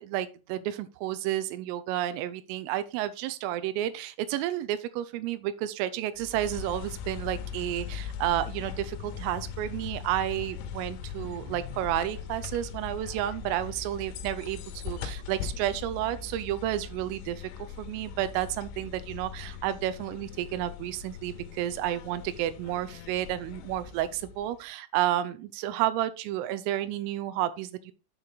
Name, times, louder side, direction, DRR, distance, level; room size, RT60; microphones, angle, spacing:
voice 1, 0.0-17.5 17.8-27.9, right 13 dB, 90° right, 3.3 m, -31 dB
sound 1, 6.2-24.6, left 7 dB, 80° left, 3.1 m, -40 dB
9.3 x 4.5 x 3.9 m
omnidirectional pair, 5.7 m